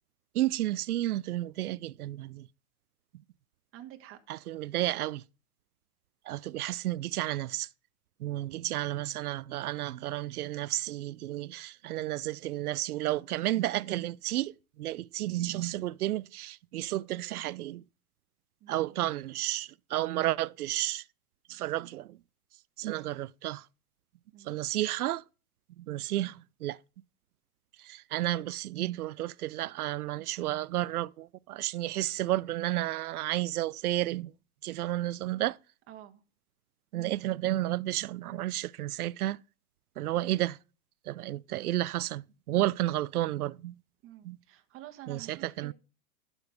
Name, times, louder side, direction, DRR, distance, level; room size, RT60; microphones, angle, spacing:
voice 1, 0.3-2.5 4.3-5.2 6.3-7.7 8.2-14.5 14.8-17.8 18.7-21.0 21.5-22.2 22.8-23.6 24.5-25.2 25.9-26.8 27.8-34.3 34.6-35.6 36.9-39.4 40.0-40.6 41.1-43.8 44.2-44.4 45.1-45.7, right 15 dB, 90° right, 0.5 m, -32 dB
voice 2, 3.7-4.2 18.6-19.1 24.3-24.6 35.9-36.2 44.0-45.7, right 13 dB, 30° right, 1.5 m, -49 dB
12.0 x 7.1 x 3.5 m
hypercardioid pair, 125°, 43 cm